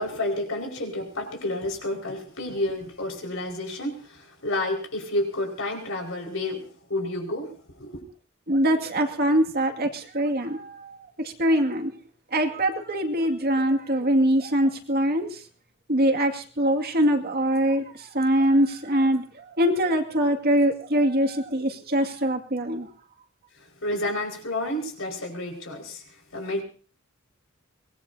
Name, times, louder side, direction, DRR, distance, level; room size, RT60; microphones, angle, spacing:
voice 1, 0.0-8.0 23.6-26.0 26.3-26.6, left 1 dB, 70° left, 1 dB, 5.2 m, -30 dB
voice 2, 8.5-10.9 11.2-11.9 12.3-15.3 15.9-19.2 19.6-22.9, equal, 50° right, 4 dB, 2.2 m, -23 dB
24.0 x 20.0 x 2.8 m, 0.39 s
head